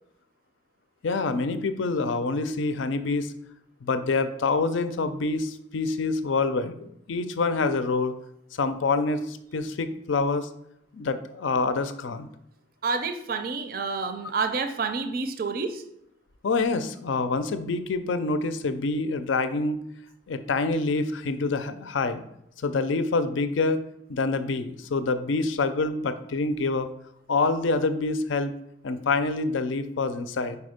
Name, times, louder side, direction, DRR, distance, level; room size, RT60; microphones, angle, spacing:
voice 1, 1.0-3.3 3.8-8.1 8.5-10.5 10.9-12.3 16.4-19.8 20.3-22.2 22.6-23.8 24.1-26.9 27.3-28.5 28.8-30.6, left 3 dB, 90° left, 11 dB, 0.5 m, -26 dB
voice 2, 12.8-15.8, right 4 dB, 50° right, 8 dB, 0.4 m, -29 dB
4.7 x 4.2 x 5.0 m, 0.78 s
head